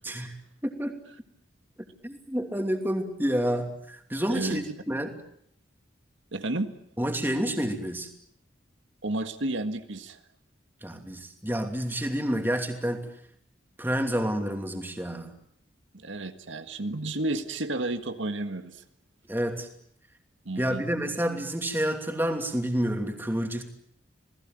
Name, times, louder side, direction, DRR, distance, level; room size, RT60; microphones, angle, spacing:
voice 1, 0.0-0.4 0.6-0.9 2.0-5.1 7.0-8.1 10.8-13.1 13.8-15.3 19.3-19.7 20.6-23.6, equal, 10° right, 5 dB, 2.8 m, -29 dB
voice 2, 4.3-4.6 6.3-6.7 9.0-10.2 16.0-18.8 20.5-20.8, right 2 dB, 80° right, 8 dB, 1.8 m, -31 dB
28.0 x 19.5 x 9.2 m, 0.69 s
head